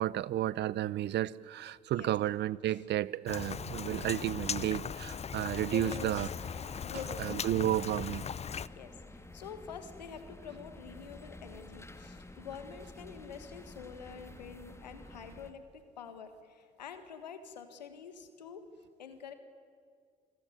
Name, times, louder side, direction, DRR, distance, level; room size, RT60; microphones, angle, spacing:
voice 1, 0.0-6.3 7.2-8.2, right 13 dB, 55° right, 21 dB, 0.8 m, -32 dB
Rain, 3.3-8.7, left 7 dB, 30° left, 0.7 m, -39 dB
voice 2, 5.7-6.3 6.8-7.5 8.8-18.7 19.0-19.3, left 6 dB, 85° left, 10 dB, 1.8 m, -47 dB
sound 1, 5.8-15.5, left 2 dB, 10° left, 2.1 m, -50 dB
27.5 x 21.5 x 9.5 m, 2.1 s
hypercardioid pair, 50°, 21 cm